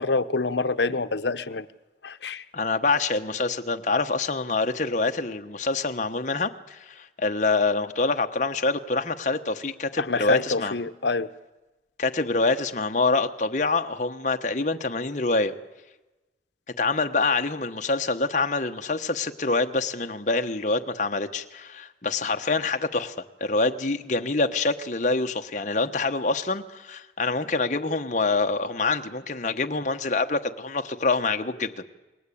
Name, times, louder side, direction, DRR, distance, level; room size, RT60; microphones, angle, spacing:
voice 1, 0.0-1.7 2.0-2.4 10.0-11.3, left 3 dB, 75° left, 11 dB, 0.9 m, -26 dB
voice 2, 2.5-10.7 12.0-15.5 16.8-23.1 23.4-31.8, left 3 dB, 40° left, 6 dB, 1.1 m, -26 dB
29.0 x 20.5 x 8.6 m, 1.1 s
head